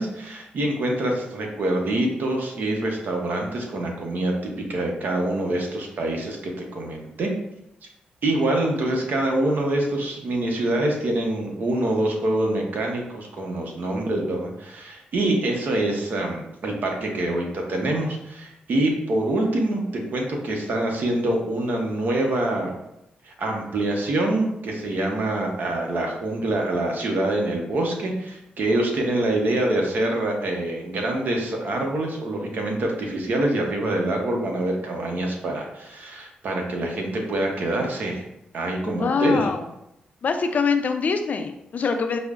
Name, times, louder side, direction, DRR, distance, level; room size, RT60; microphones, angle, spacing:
voice 1, 0.0-7.3 8.2-22.7 23.2-38.2 38.5-39.5, right 1 dB, 65° right, 1 dB, 0.7 m, -25 dB
voice 2, 38.8-39.7 40.2-42.2, left 5 dB, 55° left, 7 dB, 0.4 m, -24 dB
4.9 x 2.0 x 2.4 m, 0.83 s
cardioid pair, 70°, 3 cm